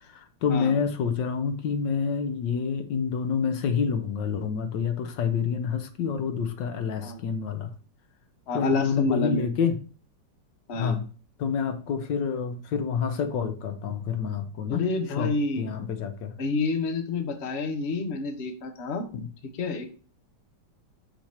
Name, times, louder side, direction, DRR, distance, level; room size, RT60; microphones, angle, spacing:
voice 1, 0.1-7.7 8.5-9.8 10.7-11.0 11.4-14.8 15.2-15.3 15.6-16.3 19.1-19.3, left 6 dB, 75° left, 9 dB, 1.5 m, -28 dB
voice 2, 8.5-9.5 10.7-11.0 14.7-15.7 16.4-19.1 19.5-19.9, left 3 dB, 40° left, 6 dB, 1.1 m, -28 dB
6.0 x 6.0 x 4.3 m, 0.38 s
omnidirectional pair, 2.1 m